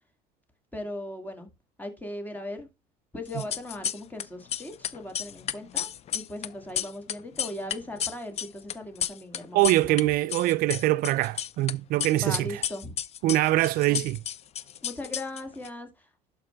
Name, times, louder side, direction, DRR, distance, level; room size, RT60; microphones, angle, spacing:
voice 1, 0.7-1.5 1.8-2.7 3.1-10.0 12.2-12.9 13.9-14.0 14.8-16.1, left 1 dB, 10° left, 2.1 m, -38 dB
sound 1, 3.3-4.2 4.5-10.0 10.3-11.7 12.0-15.7, left 10 dB, 40° left, 0.5 m, -32 dB
voice 2, 9.5-12.6 13.2-14.2, right 17 dB, 65° right, 0.4 m, -24 dB
11.5 x 4.6 x 3.4 m
cardioid pair, 120°, 16 cm